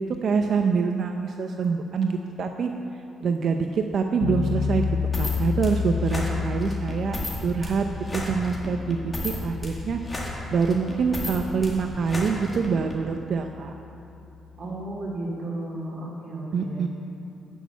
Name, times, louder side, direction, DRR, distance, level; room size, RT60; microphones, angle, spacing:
voice 1, 0.0-2.7 3.2-4.9 5.2-7.2 7.4-7.9 8.1-10.0 10.5-13.7 16.5-16.9, right 5 dB, 60° right, 5 dB, 0.6 m, -25 dB
sound 1, 4.2-15.1, left 6 dB, 90° left, 0.6 m, -32 dB
sound 2, 5.1-13.0, left 1 dB, 20° left, 2.4 m, -34 dB
voice 2, 6.2-6.7 14.6-16.8, right 2 dB, 40° right, -5 dB, 3.2 m, -34 dB
12.5 x 6.3 x 8.3 m, 2.7 s
cardioid pair, 90°, 0 cm